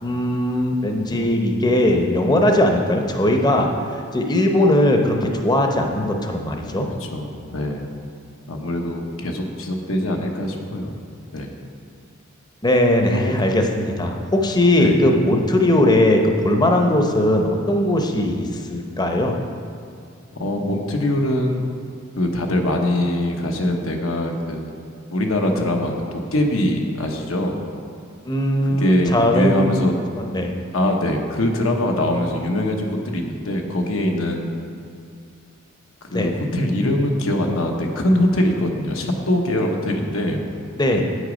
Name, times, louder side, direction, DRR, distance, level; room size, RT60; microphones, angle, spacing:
voice 1, 0.0-3.7 4.1-6.9 12.6-19.3 28.2-29.8 30.1-30.5 36.1-36.3 40.8-41.0, left 1 dB, 20° left, 3 dB, 0.7 m, -19 dB
voice 2, 7.0-7.8 8.5-11.0 11.3-11.5 13.1-13.3 14.8-15.0 20.3-21.6 22.2-24.7 25.1-27.6 28.6-30.0 30.7-34.5 36.1-40.5, left 1 dB, 80° left, 2 dB, 1.0 m, -22 dB
8.7 x 6.5 x 5.1 m, 2.4 s
head